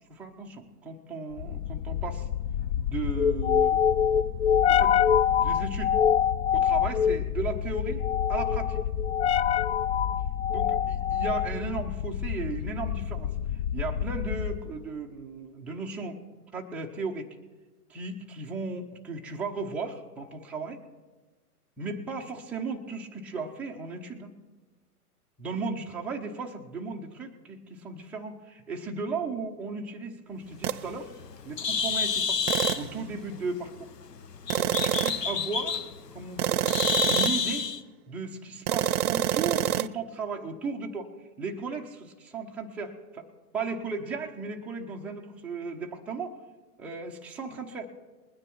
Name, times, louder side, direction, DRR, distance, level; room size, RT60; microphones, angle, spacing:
voice 1, 0.1-2.3 2.8-3.9 4.7-5.0 5.3-5.9 6.5-8.8 10.5-13.3 13.7-16.2 16.5-17.3 17.9-20.8 21.8-24.3 25.4-31.1 31.4-32.4 32.8-33.9 34.6-35.9 36.1-36.8 37.0-37.7 38.1-41.1 41.4-43.3 43.5-46.4 46.8-47.9, right 4 dB, 5° right, -1 dB, 0.4 m, -36 dB
sound 1, 1.4-14.7, left 8 dB, 45° left, 0.6 m, -26 dB
Bird, 30.5-37.8, left 5 dB, 85° left, 0.9 m, -30 dB
sound 2, 30.6-30.9 32.5-33.0 34.5-35.3 36.4-37.5 38.7-39.9, right 12 dB, 65° right, 0.6 m, -27 dB
20.5 x 9.6 x 4.5 m, 1.2 s
hypercardioid pair, 115°, 47 cm